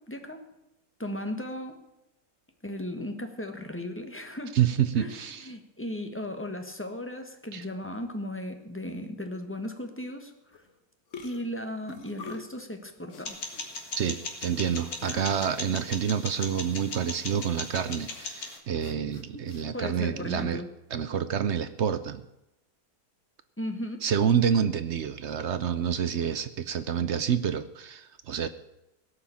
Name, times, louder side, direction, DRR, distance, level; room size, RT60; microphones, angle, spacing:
voice 1, 0.1-0.4 1.0-1.8 2.6-4.6 4.9-10.6 11.2-13.4 14.7-15.3 19.3-19.4 19.7-20.7 23.6-24.1, left 1 dB, 10° left, 5 dB, 1.2 m, -36 dB
voice 2, 4.5-5.5 7.5-7.6 13.9-20.6 20.9-22.2 24.0-28.5, right 8 dB, 60° right, 12 dB, 0.8 m, -28 dB
sound 1, 10.5-10.7 11.1-12.6 13.1-13.7 14.0-14.1 15.0-15.5 15.7-15.9 17.6-17.8 18.1-19.6, left 4 dB, 50° left, 1.4 m, -45 dB
sound 2, 13.3-18.6, left 3 dB, 70° left, 2.3 m, -38 dB
17.0 x 5.9 x 8.6 m, 0.90 s
omnidirectional pair, 1.7 m